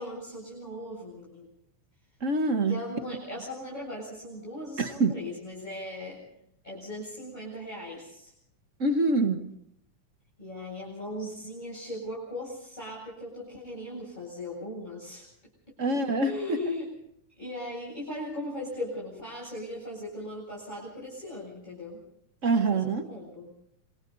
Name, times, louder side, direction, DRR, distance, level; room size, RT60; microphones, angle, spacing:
voice 1, 0.0-1.5 2.6-6.2 6.6-8.3 10.4-15.3 16.2-16.9 17.3-22.0 22.7-23.5, left 1 dB, 15° left, -6 dB, 7.9 m, -38 dB
voice 2, 2.2-2.8 4.8-5.1 8.8-9.5 15.8-16.7 22.4-23.0, right 3 dB, 40° right, 7 dB, 1.1 m, -25 dB
27.5 x 27.0 x 4.1 m, 0.73 s
omnidirectional pair, 3.5 m